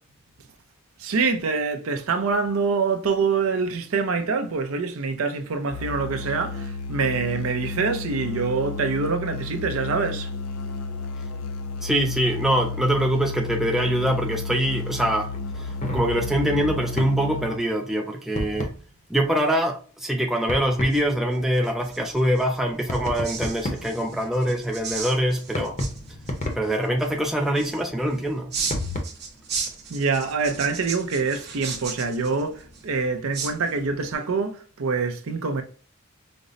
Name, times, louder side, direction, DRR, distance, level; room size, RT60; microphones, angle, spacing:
voice 1, 1.0-10.3 29.9-35.6, right 4 dB, 75° right, 0.5 m, -25 dB
Musical instrument, 5.7-17.7, left 3 dB, 80° left, 0.4 m, -33 dB
voice 2, 11.8-18.7 19.1-25.7 26.6-28.5, equal, ahead, 0.3 m, -24 dB
sound 1, 15.3-17.2 18.3-18.8 20.5-21.0 22.9-24.0 25.5-26.8 28.7-29.0, left 1 dB, 35° left, 0.6 m, -31 dB
sound 2, 20.7-34.1, right 5 dB, 50° right, 0.9 m, -37 dB
5.1 x 2.0 x 2.5 m
head